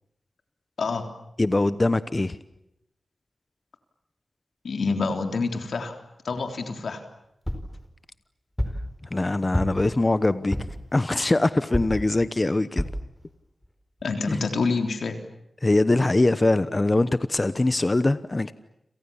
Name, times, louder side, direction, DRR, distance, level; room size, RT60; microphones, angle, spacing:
voice 1, 1.4-2.4 9.1-10.6 10.9-12.9 14.3-14.4 15.6-18.5, left 2 dB, 25° left, 13 dB, 1.0 m, -22 dB
voice 2, 4.6-6.0 6.2-7.0 14.0-15.2, left 4 dB, 90° left, 5 dB, 3.6 m, -27 dB
sound 1, 7.5-7.8 8.6-8.9 9.5-9.9 10.5-10.8 11.7-12.1 12.8-13.1 13.6-13.7 14.0-14.1, equal, 10° left, 4.6 m, -28 dB
30.0 x 27.5 x 7.2 m, 0.81 s
wide cardioid pair, 95°, 0 cm